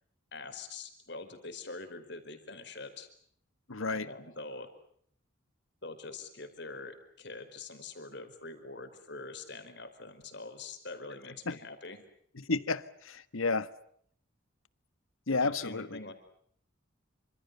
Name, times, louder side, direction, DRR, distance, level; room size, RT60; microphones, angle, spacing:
voice 1, 0.3-3.1 3.9-4.7 5.8-12.0 15.3-16.1, left 3 dB, 55° left, 4.8 m, -44 dB
voice 2, 3.7-4.1 11.5-11.6 12.4-13.7 15.3-16.0, left 3 dB, 85° left, 1.4 m, -31 dB
28.0 x 26.5 x 6.8 m
head